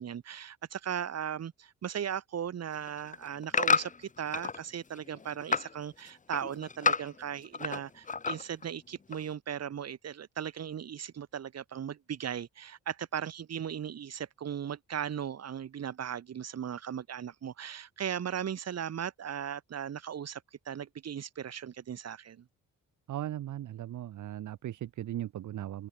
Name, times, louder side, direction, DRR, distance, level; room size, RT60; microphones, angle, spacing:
voice 1, 0.0-22.4, right 8 dB, 55° right, 4.6 m, -37 dB
sound 1, 2.7-4.6 5.0-5.7 6.1-7.8 8.1-8.6 9.1-9.2, left 5 dB, 25° left, 1.3 m, -30 dB
voice 2, 23.1-25.9, right 12 dB, 75° right, 5.7 m, -38 dB
open air
cardioid pair, 90°, 30 cm